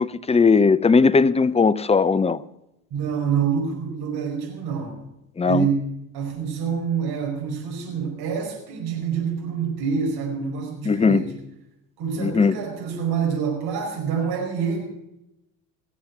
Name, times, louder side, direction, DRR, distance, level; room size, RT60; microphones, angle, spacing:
voice 1, 0.0-2.4 5.4-5.7 10.8-11.2 12.2-12.6, left 4 dB, 15° left, 0.6 m, -18 dB
voice 2, 2.9-5.0 5.4-11.3 12.0-14.8, right 6 dB, 60° right, 4.9 m, -26 dB
19.0 x 7.4 x 8.2 m
hypercardioid pair, 65°, 43 cm